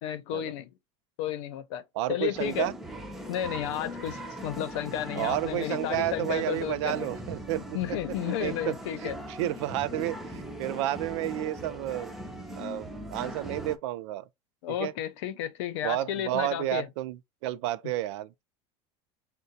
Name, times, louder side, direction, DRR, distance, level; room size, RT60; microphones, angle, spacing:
voice 1, 0.0-0.7 1.2-1.8 2.1-2.7 3.3-7.0 7.7-9.1 14.6-16.9, left 11 dB, 80° left, 0.7 m, -32 dB
voice 2, 1.9-2.7 5.1-7.6 8.2-8.7 9.0-12.1 12.6-14.3 14.8-14.9 15.8-18.4, right 14 dB, 85° right, 0.4 m, -31 dB
sound 1, 2.3-13.8, equal, ahead, 0.4 m, -40 dB
6.4 x 2.2 x 2.7 m
cardioid pair, 175°, 15 cm